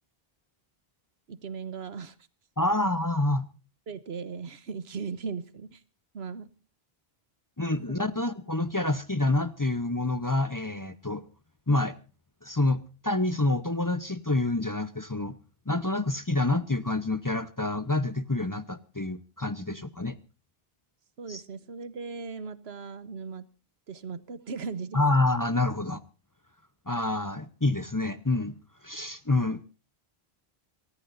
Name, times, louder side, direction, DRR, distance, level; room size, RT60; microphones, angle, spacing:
voice 1, 1.3-2.2 3.9-5.8 6.1-6.5 7.9-8.1 21.2-23.4 23.9-25.0, right 5 dB, 85° right, 15 dB, 1.3 m, -38 dB
voice 2, 2.6-3.5 7.6-11.2 11.7-11.9 12.4-15.3 15.7-20.2 21.3-21.4 24.9-26.0 26.9-28.6 28.8-29.6, left 2 dB, 20° left, 12 dB, 0.7 m, -27 dB
26.5 x 14.0 x 2.6 m, 0.33 s
omnidirectional pair, 1.0 m